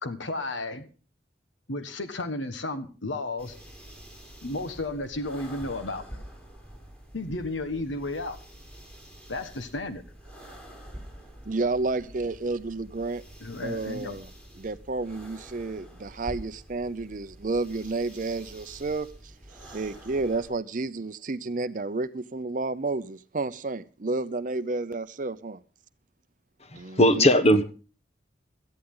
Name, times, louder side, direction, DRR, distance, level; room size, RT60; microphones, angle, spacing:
voice 1, 0.0-0.9 1.7-3.6 4.4-6.0 7.1-8.4 9.3-10.0 13.4-14.1, left 2 dB, 85° left, 1.4 m, -33 dB
sound 1, 3.4-20.5, equal, 5° left, 5.6 m, -47 dB
voice 2, 11.5-13.2 13.6-14.3 14.6-19.1 19.6-25.6 26.7-27.3, right 3 dB, 45° right, 0.6 m, -31 dB
voice 3, 26.7-27.6, equal, 35° left, 1.1 m, -19 dB
17.5 x 13.5 x 3.8 m
head